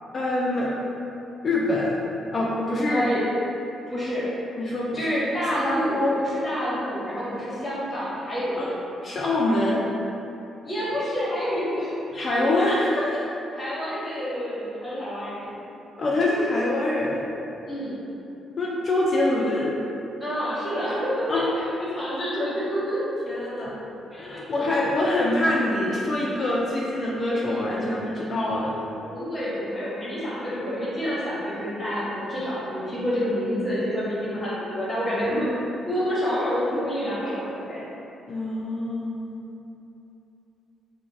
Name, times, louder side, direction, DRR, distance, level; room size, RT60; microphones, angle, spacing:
voice 1, 0.1-0.7 1.4-2.1 2.3-3.0 4.6-5.1 5.6-6.1 8.6-8.7 9.0-9.8 12.1-13.2 16.0-17.3 18.6-19.7 21.3-21.4 23.3-23.7 24.2-28.7 38.3-39.3, left 1 dB, 40° left, -5 dB, 0.3 m, -25 dB
voice 2, 2.9-3.2 3.9-4.3 4.9-8.7 10.6-11.9 12.4-12.5 13.6-15.5 17.7-18.0 20.2-23.0 23.5-23.6 24.1-24.7 29.0-35.6 35.9-37.8, equal, 20° left, -9 dB, 1.0 m, -28 dB
2.4 x 2.1 x 3.1 m, 2.9 s
cardioid pair, 90°, 0 cm